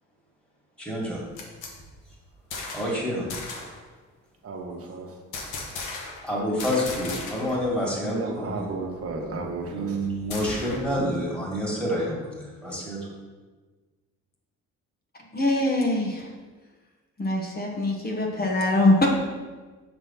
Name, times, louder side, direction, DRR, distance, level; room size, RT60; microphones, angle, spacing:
voice 1, 0.8-1.2 2.7-3.3 6.2-8.7 9.7-13.0, equal, 5° left, -5 dB, 2.1 m, -28 dB
sound 1, 1.1-3.0 3.3-3.8 5.3-6.3 6.6-7.7 7.9-8.0 8.4-11.0, left 3 dB, 85° left, 1.1 m, -37 dB
voice 2, 4.4-5.2 7.8-10.0, right 3 dB, 50° right, 1 dB, 1.2 m, -34 dB
voice 3, 15.3-16.3 17.2-19.1, left 1 dB, 30° left, 0 dB, 1.1 m, -23 dB
5.9 x 3.4 x 5.6 m, 1.3 s
cardioid pair, 90°, 30 cm